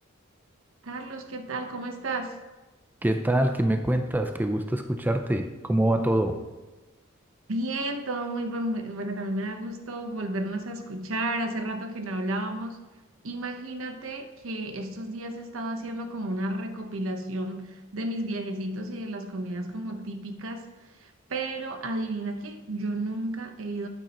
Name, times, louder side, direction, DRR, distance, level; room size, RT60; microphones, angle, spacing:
voice 1, 0.8-2.4 7.5-12.8 13.2-20.7 21.0-23.9, right 1 dB, 85° right, 6 dB, 1.0 m, -32 dB
voice 2, 3.0-6.4, right 1 dB, 10° right, 6 dB, 0.5 m, -25 dB
12.5 x 8.9 x 3.0 m, 1.2 s
head